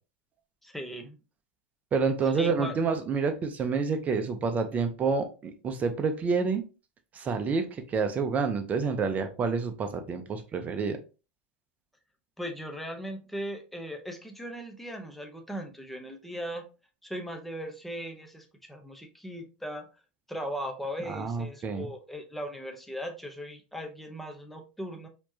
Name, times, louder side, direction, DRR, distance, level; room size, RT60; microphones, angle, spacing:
voice 1, 0.6-1.2 2.3-2.8 12.4-16.7 17.0-19.9 20.3-25.1, equal, 5° left, 3 dB, 0.8 m, -38 dB
voice 2, 1.9-6.6 7.1-11.0 21.1-21.9, right 5 dB, 25° right, 7 dB, 0.8 m, -28 dB
4.3 x 2.9 x 2.8 m, 0.32 s
hypercardioid pair, 110°, 6 cm